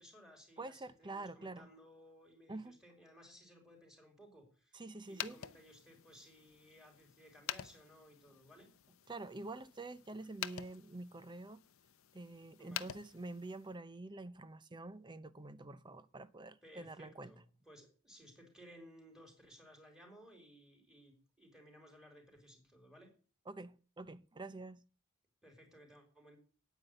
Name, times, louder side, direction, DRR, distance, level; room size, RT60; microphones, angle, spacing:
voice 1, 0.0-8.7 12.6-13.0 16.6-23.1 25.4-26.4, equal, 5° right, 3.9 m, -60 dB
voice 2, 0.6-1.7 2.5-2.8 4.7-5.4 9.1-11.6 12.1-17.3 23.5-24.8, right 2 dB, 20° right, 0.6 m, -47 dB
sound 1, 5.0-13.8, left 11 dB, 65° left, 0.7 m, -48 dB
9.5 x 9.2 x 8.0 m
head